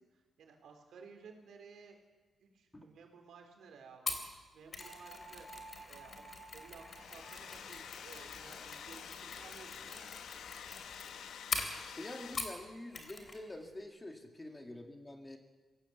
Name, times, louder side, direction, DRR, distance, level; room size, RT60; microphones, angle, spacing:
voice 1, 0.4-2.0 2.4-4.2 4.5-5.5 5.9-6.2 6.5-10.1, right 5 dB, 90° right, 3 dB, 4.0 m, -56 dB
Mechanisms, 4.1-12.6 12.9-13.4 13.7-13.8, left 3 dB, 35° left, 3.0 m, -43 dB
sound 1, 4.8-10.6, right 4 dB, 5° right, 5.9 m, -56 dB
Domestic sounds home sounds, 6.7-12.8, left 8 dB, 85° left, 0.9 m, -49 dB
voice 2, 11.8-15.4, left 1 dB, 15° left, 3 dB, 2.1 m, -47 dB
24.5 x 17.0 x 7.2 m, 1.3 s
wide cardioid pair, 150°, 0 cm